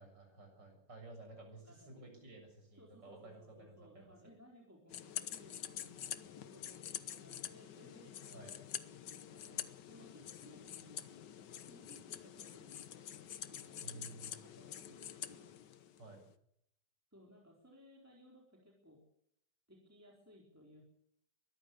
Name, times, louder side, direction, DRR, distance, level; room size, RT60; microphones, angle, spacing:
voice 1, 0.0-4.1 8.3-8.5 13.8-14.4 16.0-16.2, right 3 dB, 75° right, 3 dB, 7.7 m, -54 dB
voice 2, 1.6-2.2 2.8-13.0 13.5-14.1 14.4-15.5 17.1-19.0 19.7-20.8, equal, 10° right, -1 dB, 4.1 m, -61 dB
sound 1, 4.9-16.2, left 10 dB, 75° left, 1.7 m, -47 dB
22.5 x 14.5 x 8.2 m, 0.73 s
omnidirectional pair, 1.9 m